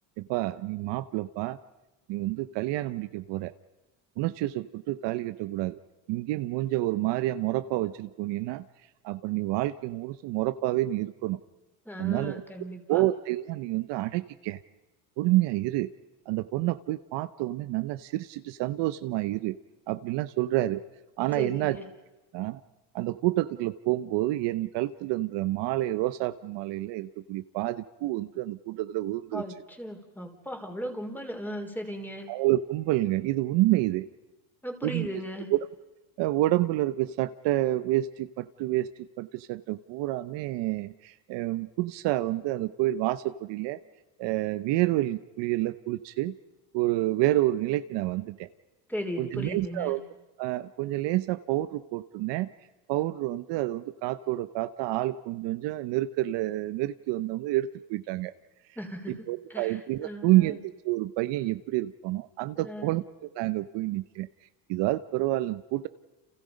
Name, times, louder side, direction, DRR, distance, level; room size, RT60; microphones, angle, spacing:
voice 1, 0.2-1.6 2.1-3.5 4.2-5.8 6.1-8.6 9.0-11.4 12.0-12.4 12.9-14.6 15.2-15.9 16.3-19.6 19.9-20.8 21.2-21.8 22.3-22.6 22.9-29.4 32.3-34.1 34.8-35.2 35.5-35.6 36.2-38.9 39.2-43.8 44.2-46.3 46.7-48.5 49.2-50.0 50.4-52.5 52.9-58.3 59.1-63.0 63.4-64.3 64.7-65.9, right 16 dB, 65° right, 12 dB, 1.0 m, -28 dB
voice 2, 11.9-13.0 21.4-21.9 29.3-32.3 34.6-35.5 48.9-49.9 58.8-60.6 62.6-62.9, equal, 5° left, 4 dB, 4.0 m, -37 dB
30.0 x 28.0 x 5.3 m, 1.2 s
cardioid pair, 115°, 46 cm